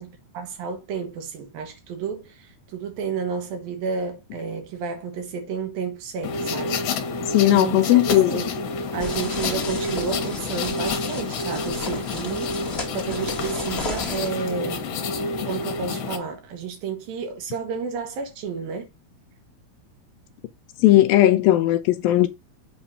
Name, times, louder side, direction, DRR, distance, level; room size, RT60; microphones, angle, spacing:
voice 1, 0.0-6.8 7.5-8.6 8.9-14.9 15.4-18.9, right 5 dB, 70° right, 3.0 m, -31 dB
sound 1, 6.2-16.2, left 3 dB, 65° left, 2.5 m, -28 dB
voice 2, 7.3-8.4 20.8-22.3, left 14 dB, 80° left, 2.3 m, -17 dB
sound 2, 9.0-14.3, left 3 dB, 45° left, 0.7 m, -35 dB
8.0 x 3.4 x 5.5 m
omnidirectional pair, 4.4 m